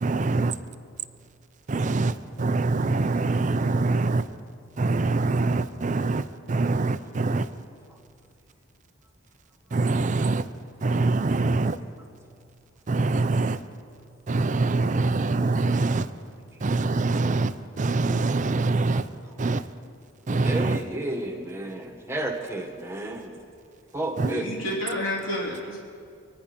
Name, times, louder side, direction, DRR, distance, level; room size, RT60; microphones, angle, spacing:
voice 1, 0.0-0.5 1.7-4.3 4.8-7.5 9.7-10.5 10.8-11.8 12.9-13.6 14.3-16.1 16.6-19.1 19.4-19.7 20.3-20.8 24.2-24.3, right 3 dB, 40° right, 12 dB, 0.5 m, -24 dB
voice 2, 20.4-23.4 23.9-24.5, right 1 dB, 15° right, 2 dB, 1.6 m, -32 dB
voice 3, 24.2-25.8, left 1 dB, 80° left, -4 dB, 3.1 m, -30 dB
25.0 x 10.0 x 5.3 m, 2.3 s
head